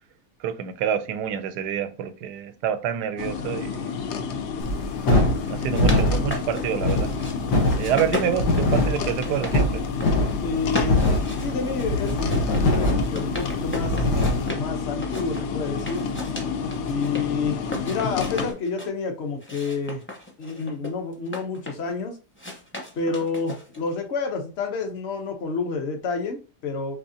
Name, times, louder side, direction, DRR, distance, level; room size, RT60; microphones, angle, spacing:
voice 1, 0.4-3.9 5.1-7.1 7.8-9.8, right 9 dB, 85° right, 1.2 m, -27 dB
sound 1, 3.2-18.5, left 5 dB, 75° left, 0.6 m, -30 dB
sound 2, 4.6-14.5, left 1 dB, 90° left, 1.6 m, -23 dB
sound 3, 5.5-7.3 7.7-9.6 9.8-10.4 10.7-14.7 15.0-17.2 17.6-18.9 19.4-21.9 22.4-23.9, left 1 dB, 10° left, 0.6 m, -35 dB
voice 2, 10.4-11.0 11.4-14.1 14.4-16.1 16.9-20.0 20.4-22.2 23.0-27.0, left 4 dB, 50° left, 0.9 m, -29 dB
4.9 x 3.4 x 2.7 m
omnidirectional pair, 1.7 m